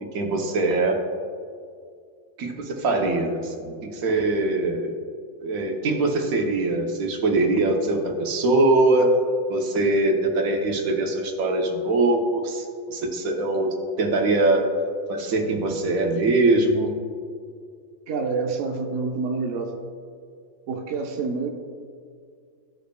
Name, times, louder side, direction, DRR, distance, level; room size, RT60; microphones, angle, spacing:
voice 1, 0.1-1.0 2.4-4.9 5.4-9.1 9.5-14.7 15.1-16.9, right 2 dB, 90° right, 2 dB, 1.3 m, -22 dB
voice 2, 18.1-19.7 20.7-21.5, right 4 dB, 65° right, 3 dB, 1.0 m, -27 dB
14.5 x 5.1 x 2.3 m, 2.2 s
omnidirectional pair, 1.4 m